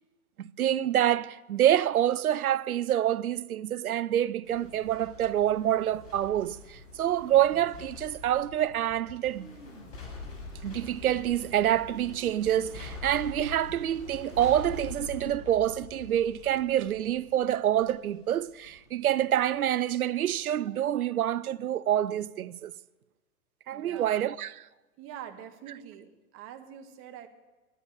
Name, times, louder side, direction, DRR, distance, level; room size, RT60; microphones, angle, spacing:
voice 1, 0.4-9.5 10.6-22.7 23.7-24.7, right 11 dB, 80° right, 0.7 m, -27 dB
sound 1, 4.4-19.9 20.3-20.4, left 3 dB, 60° left, 6.6 m, -45 dB
sound 2, 7.6-16.1, left 4 dB, 35° left, 1.8 m, -53 dB
voice 2, 23.7-24.2 25.0-27.3, right 10 dB, 30° right, 1.6 m, -45 dB
13.0 x 12.0 x 8.7 m
hypercardioid pair, 120°, 43 cm